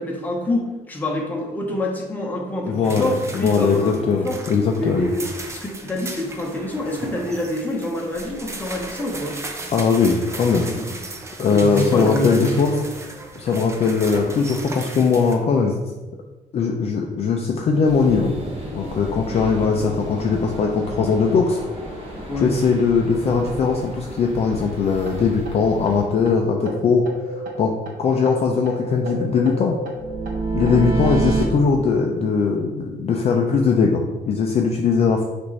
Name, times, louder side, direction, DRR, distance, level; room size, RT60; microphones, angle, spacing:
voice 1, 0.0-4.4 4.8-9.4 11.5-12.8 22.3-22.5, left 1 dB, 10° left, -1 dB, 0.8 m, -26 dB
voice 2, 2.6-5.1 9.7-10.7 11.4-12.7 13.4-15.8 16.5-18.3 18.7-21.6 22.4-27.0 27.4-29.8 30.5-35.2, left 5 dB, 40° left, 1 dB, 0.4 m, -20 dB
sound 1, 2.8-15.4, right 2 dB, 20° right, 0.4 m, -36 dB
sound 2, 17.8-26.0, equal, 35° right, 1.2 m, -34 dB
Hyper whoosh intro, 25.1-25.2 25.5-25.6 25.9-26.0 26.3-26.4 26.7-28.0 28.3-31.4, right 3 dB, 65° right, 0.8 m, -27 dB
6.0 x 2.5 x 3.1 m, 1.1 s
cardioid pair, 150°, 16 cm